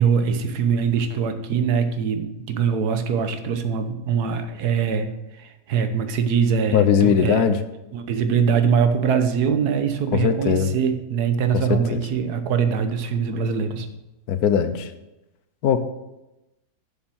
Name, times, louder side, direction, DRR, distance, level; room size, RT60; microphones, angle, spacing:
voice 1, 0.0-7.5 7.9-13.9, right 6 dB, 70° right, 8 dB, 1.4 m, -23 dB
voice 2, 6.7-7.6 10.1-10.7 11.9-12.0 14.3-14.9 15.6-15.8, left 8 dB, 70° left, 10 dB, 1.2 m, -19 dB
7.1 x 7.0 x 6.2 m, 0.98 s
omnidirectional pair, 1.8 m